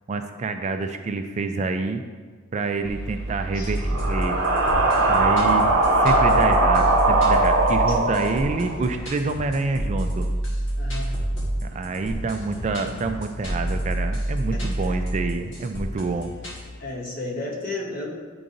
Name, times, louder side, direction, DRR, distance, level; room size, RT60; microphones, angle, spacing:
voice 1, 0.1-2.0 2.5-4.4 5.1-10.3 11.6-16.3, right 3 dB, 35° right, 7 dB, 0.3 m, -27 dB
sound 1, 2.8-9.0, right 2 dB, 75° right, 0.8 m, -21 dB
sound 2, 3.6-16.6, right 1 dB, 65° left, 1.4 m, -29 dB
voice 2, 10.8-11.1 14.5-14.9 16.8-18.1, left 2 dB, 45° left, -2 dB, 1.1 m, -33 dB
10.0 x 3.9 x 2.6 m, 1.5 s
head